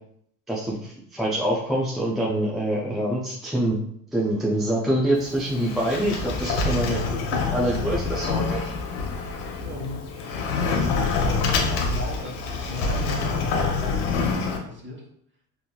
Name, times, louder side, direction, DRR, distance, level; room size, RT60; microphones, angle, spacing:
voice 1, 0.5-3.8 4.1-7.0 7.5-8.6, right 1 dB, ahead, -5 dB, 0.3 m, -25 dB
Sliding door, 5.1-14.6, left 4 dB, 90° left, 0.7 m, -26 dB
voice 2, 9.6-10.0 10.8-15.0, left 2 dB, 25° right, -1 dB, 1.1 m, -36 dB
3.8 x 2.6 x 2.2 m, 0.69 s
supercardioid pair, 95°, 43 cm